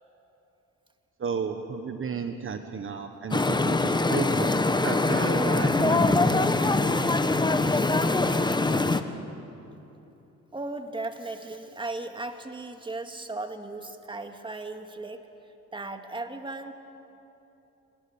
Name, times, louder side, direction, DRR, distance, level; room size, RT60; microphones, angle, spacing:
voice 1, 1.2-4.6 4.8-7.0, right 6 dB, 45° right, 7 dB, 1.4 m, -33 dB
sound 1, 3.3-9.0, left 2 dB, 15° left, 1.1 m, -23 dB
voice 2, 7.6-8.0 10.5-15.2 15.7-16.7, right 2 dB, 15° right, 6 dB, 2.1 m, -36 dB
29.5 x 20.5 x 8.8 m, 3.0 s
cardioid pair, 90°, 30 cm